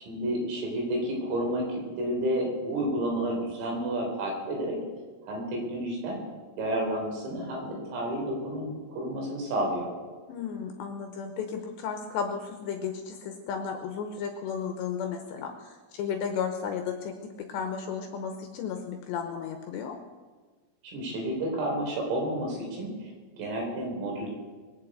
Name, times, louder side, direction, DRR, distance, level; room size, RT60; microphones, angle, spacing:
voice 1, 0.1-4.8 5.3-6.2 6.6-9.9 20.9-22.9 23.4-24.3, right 1 dB, 75° right, 0 dB, 6.6 m, -30 dB
voice 2, 10.3-20.0, left 6 dB, 75° left, 5 dB, 2.7 m, -34 dB
22.5 x 7.6 x 8.2 m, 1.4 s
omnidirectional pair, 6.0 m